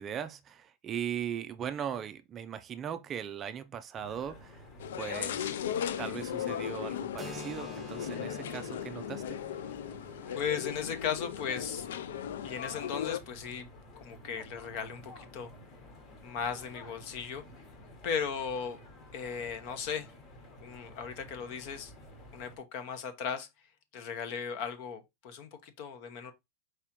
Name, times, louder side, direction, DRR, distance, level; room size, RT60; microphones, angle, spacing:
voice 1, 0.0-4.7 5.0-5.7 6.0-9.4, right 9 dB, 25° right, 0.4 m, -39 dB
sound 1, 3.9-22.6, left 1 dB, 30° left, 1.3 m, -52 dB
sound 2, 4.8-13.2, left 9 dB, 85° left, 0.4 m, -37 dB
Keyboard (musical), 7.2-14.5, right 1 dB, ahead, 1.1 m, -51 dB
voice 2, 10.3-11.9 12.4-13.7 14.0-15.5 16.2-17.4 18.0-18.8 19.1-20.1 20.6-21.9 22.3-23.5 23.9-26.3, left 7 dB, 50° left, 1.0 m, -36 dB
4.8 x 3.5 x 2.9 m
supercardioid pair, 150°, 0 cm